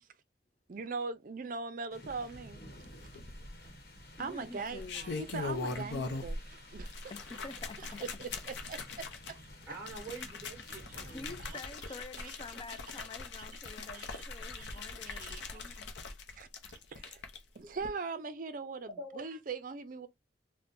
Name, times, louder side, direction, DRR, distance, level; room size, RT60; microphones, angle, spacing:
voice 1, 0.7-2.6 4.2-7.1 8.0-9.5 10.7-11.1 11.5-11.6 12.2-12.4 13.4-13.5 13.9-14.1 14.5-14.8 15.1-15.6 16.3-16.5 16.9-17.2 17.5-20.1, right 4 dB, 45° right, 0.5 m, -41 dB
sound 1, 1.9-11.5, left 1 dB, 55° left, 1.1 m, -53 dB
sound 2, 3.1-3.8 4.6-6.5 6.7-17.4 17.8-17.9, left 3 dB, 75° left, 0.6 m, -41 dB
voice 2, 4.2-5.1 7.1-8.1 11.1-15.9, left 3 dB, 30° left, 0.4 m, -48 dB
voice 3, 9.7-11.3 17.6-17.7 19.0-19.2, right 2 dB, 10° right, 0.8 m, -45 dB
4.2 x 2.1 x 2.5 m
head